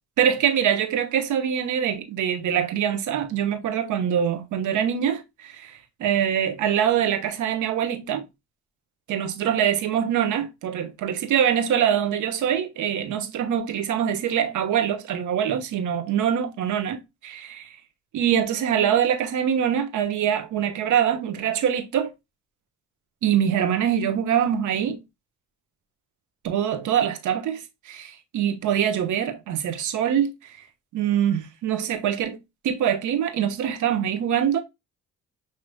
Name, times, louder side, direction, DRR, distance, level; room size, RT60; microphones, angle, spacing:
voice 1, 0.2-8.2 9.1-17.8 18.1-22.1 23.2-25.0 26.4-30.6 30.9-32.4 32.6-34.6, right 9 dB, 80° right, 1.0 m, -24 dB
6.4 x 3.0 x 2.2 m
cardioid pair, 90°, 30 cm